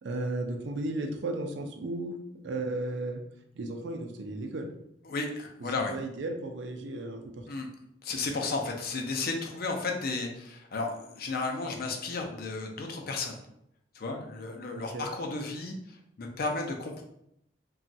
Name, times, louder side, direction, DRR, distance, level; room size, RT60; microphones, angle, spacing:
voice 1, 0.0-2.1 2.4-3.2 3.6-4.7 5.9-7.3 14.7-15.1, right 2 dB, 75° right, 4 dB, 0.4 m, -34 dB
voice 2, 5.0-6.0 7.4-7.7 8.0-13.4 13.9-17.0, left 3 dB, 55° left, 2 dB, 0.5 m, -33 dB
2.9 x 2.3 x 2.6 m, 0.76 s
head